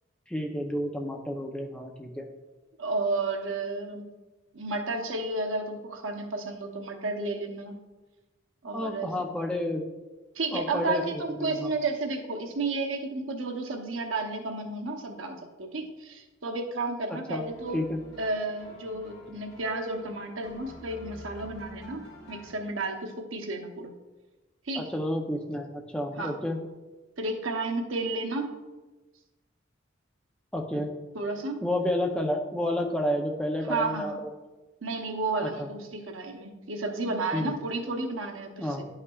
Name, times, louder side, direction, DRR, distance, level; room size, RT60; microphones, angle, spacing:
voice 1, 0.3-2.3 8.7-9.8 10.5-11.7 17.3-17.4 17.7-18.0 24.7-26.6 30.5-30.9 31.6-34.3 35.4-35.7 37.3-37.6 38.6-38.8, left 1 dB, 5° left, 1 dB, 0.5 m, -30 dB
voice 2, 2.8-4.1 4.5-7.8 8.6-9.1 10.3-17.8 18.2-23.9 24.7-24.8 26.2-26.3 27.2-28.5 31.1-31.6 33.7-34.2 34.8-38.7, right 3 dB, 90° right, 4 dB, 0.9 m, -32 dB
sound 1, 17.4-22.5, left 1 dB, 60° left, 2.3 m, -48 dB
11.0 x 5.5 x 2.3 m, 1.2 s
head